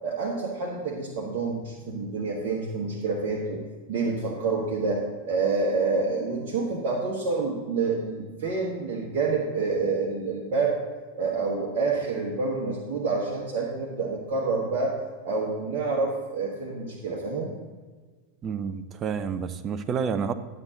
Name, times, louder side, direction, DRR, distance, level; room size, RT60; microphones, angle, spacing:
voice 1, 0.0-3.6 3.9-10.8 11.1-14.9 15.2-17.5, right 4 dB, 45° right, -2 dB, 1.4 m, -28 dB
voice 2, 18.4-20.3, right 6 dB, 30° right, 10 dB, 0.6 m, -29 dB
11.5 x 7.8 x 3.9 m, 1.4 s
figure-of-eight pair, 90°, 0 cm